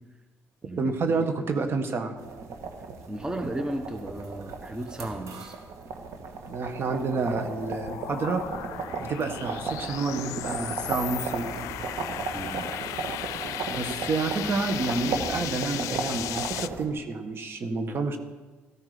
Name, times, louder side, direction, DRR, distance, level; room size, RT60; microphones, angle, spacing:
voice 1, 0.8-2.2 6.5-8.4 9.0-11.7 13.7-18.2, right 4 dB, 45° right, 6 dB, 1.7 m, -29 dB
sound 1, 2.2-16.9, right 4 dB, 70° right, 1.8 m, -36 dB
voice 2, 3.1-5.6 12.3-12.7, right 1 dB, 15° right, 6 dB, 1.1 m, -34 dB
sound 2, 6.3-16.7, left 15 dB, 85° left, 0.4 m, -36 dB
14.0 x 13.5 x 5.2 m, 1.3 s
cardioid pair, 90°, 5 cm